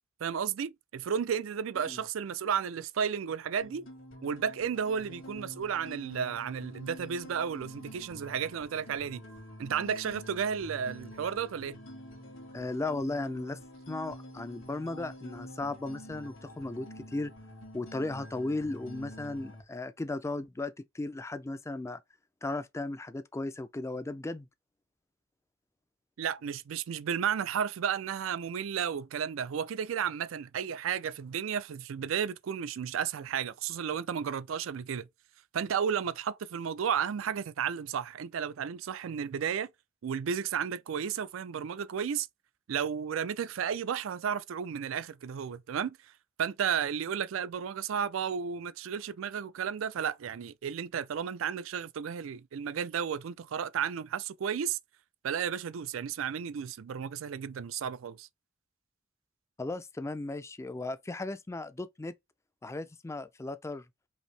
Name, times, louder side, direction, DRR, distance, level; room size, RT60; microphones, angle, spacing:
voice 1, 0.2-3.9 4.2-9.2 9.6-11.8 26.2-35.1 35.5-39.7 40.0-42.3 42.7-46.0 46.4-54.8 55.2-58.3, right 7 dB, 75° right, 0.4 m, -33 dB
sound 1, 3.6-19.6, equal, 75° left, 2.0 m, -47 dB
voice 2, 12.5-13.6 13.9-17.3 17.7-22.0 22.4-24.5 59.6-62.1 62.6-63.8, left 2 dB, 15° left, 0.3 m, -36 dB
5.3 x 2.7 x 3.2 m
head